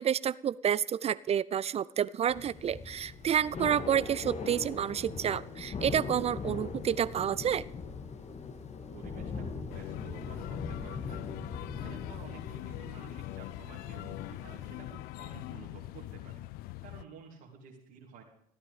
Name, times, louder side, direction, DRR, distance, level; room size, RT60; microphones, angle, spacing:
voice 1, 0.0-7.6, right 9 dB, 35° right, 20 dB, 0.5 m, -29 dB
Thunder / Rain, 2.3-15.2, left 4 dB, 40° left, 2.0 m, -41 dB
voice 2, 8.9-18.2, right 6 dB, 65° right, -4 dB, 2.9 m, -52 dB
sound 1, 9.7-17.0, left 17 dB, 60° left, 0.5 m, -42 dB
14.5 x 13.0 x 5.1 m, 0.71 s
figure-of-eight pair, 55°, 18 cm